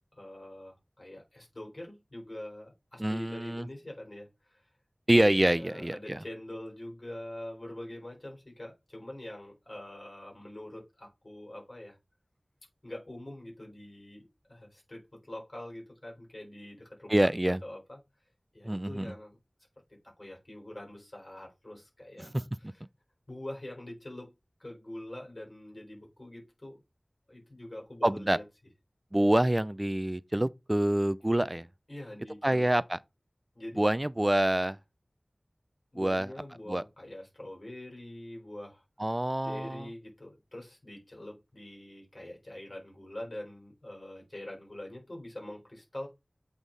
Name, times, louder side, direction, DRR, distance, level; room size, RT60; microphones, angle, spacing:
voice 1, 0.0-4.7 5.6-12.0 12.8-18.0 18.5-19.4 19.9-22.8 23.3-24.3 24.6-26.8 27.3-28.4 31.9-32.7 33.5-33.8 35.9-38.8 39.4-46.1, left 1 dB, 50° left, 4.0 m, -44 dB
voice 2, 3.0-3.7 5.1-6.2 17.1-17.6 18.6-19.1 22.2-22.4 28.0-28.4 29.1-31.7 32.4-33.0 33.8-34.8 36.0-36.3 36.7-36.8 39.0-39.9, right 1 dB, 25° right, 0.5 m, -26 dB
8.3 x 3.6 x 3.9 m
wide cardioid pair, 40°, 0 cm